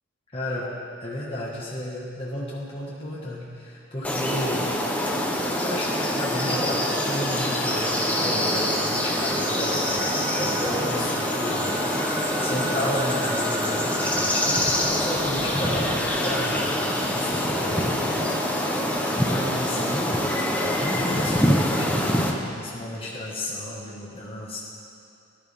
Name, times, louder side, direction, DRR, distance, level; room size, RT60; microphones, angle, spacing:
voice 1, 0.3-0.7 1.0-4.7 5.6-9.9 10.3-11.7 12.4-16.8 17.1-18.4 19.1-20.2 20.6-22.2 22.5-24.6, left 1 dB, 30° left, -7 dB, 1.8 m, -32 dB
sound 1, 4.0-22.3, left 1 dB, 10° left, 1.0 m, -25 dB
sound 2, 6.3-20.9, right 1 dB, 20° right, 0.6 m, -36 dB
18.5 x 11.0 x 3.7 m, 2.5 s
head